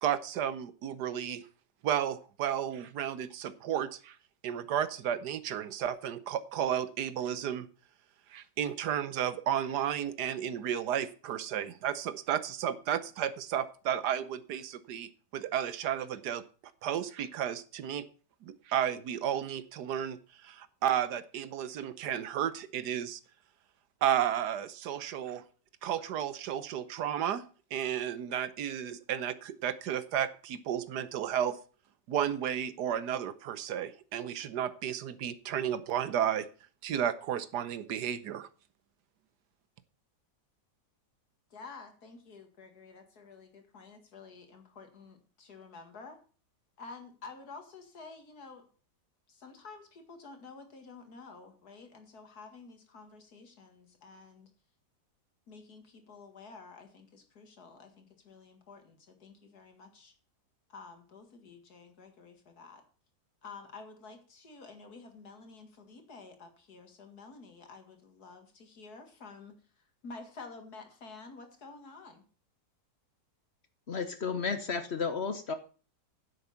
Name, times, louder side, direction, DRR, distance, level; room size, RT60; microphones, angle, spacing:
voice 1, 0.0-1.4 1.8-4.2 4.4-7.7 8.3-16.4 16.8-18.0 18.4-23.2 24.0-25.4 25.8-27.4 27.7-31.6 32.1-36.5 36.8-38.5, right 10 dB, 80° right, 14 dB, 1.4 m, -33 dB
voice 2, 41.5-46.2 46.8-48.7 49.3-54.5 55.5-60.1 60.7-62.8 63.4-72.3, left 4 dB, 65° left, 6 dB, 2.4 m, -50 dB
voice 3, 73.9-75.5, left 5 dB, 45° left, 10 dB, 1.0 m, -33 dB
10.0 x 8.0 x 5.7 m, 0.38 s
omnidirectional pair, 1.8 m